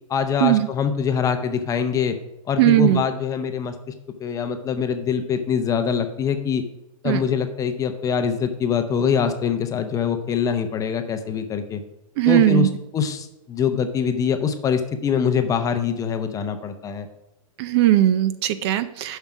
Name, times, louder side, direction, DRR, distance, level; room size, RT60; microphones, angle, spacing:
voice 1, 0.1-2.1 2.5-3.9 4.2-6.6 7.0-11.8 12.3-17.1, left 7 dB, 20° left, 7 dB, 0.7 m, -24 dB
voice 2, 2.6-3.0 7.0-7.2 12.2-12.7 17.6-19.2, right 13 dB, 45° right, 13 dB, 0.5 m, -18 dB
7.1 x 5.6 x 6.1 m, 0.91 s
hypercardioid pair, 140°, 19 cm